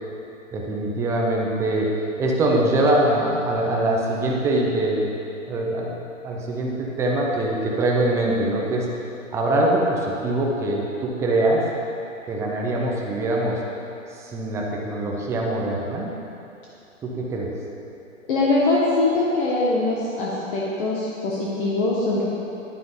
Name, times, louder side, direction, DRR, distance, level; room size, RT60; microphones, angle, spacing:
voice 1, 0.5-1.9 2.2-5.1 5.5-6.0 6.2-8.9 9.3-11.7 12.3-13.6 14.1-16.1 17.0-17.6, right 1 dB, 5° right, -2 dB, 0.6 m, -23 dB
voice 2, 18.3-22.2, left 2 dB, 40° left, -6 dB, 1.6 m, -22 dB
10.5 x 9.2 x 3.9 m, 2.8 s
hypercardioid pair, 140°, 40 cm